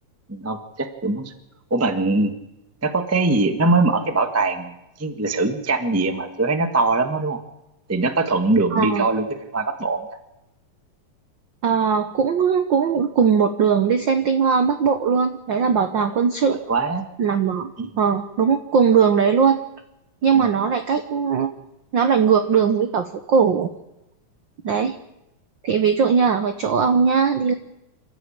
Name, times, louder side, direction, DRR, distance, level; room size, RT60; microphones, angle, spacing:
voice 1, 0.3-1.3 1.7-2.3 2.8-4.7 5.0-7.4 7.9-9.3 9.5-10.0 16.5-17.0 17.8-17.9 20.3-20.5, right 3 dB, 25° right, 7 dB, 0.3 m, -22 dB
voice 2, 8.7-9.1 11.6-16.6 17.2-19.6 20.2-21.5 21.9-23.7 24.6-24.9 25.6-27.5, right 6 dB, 80° right, 8 dB, 1.0 m, -19 dB
28.0 x 13.0 x 8.8 m, 0.90 s
omnidirectional pair, 3.5 m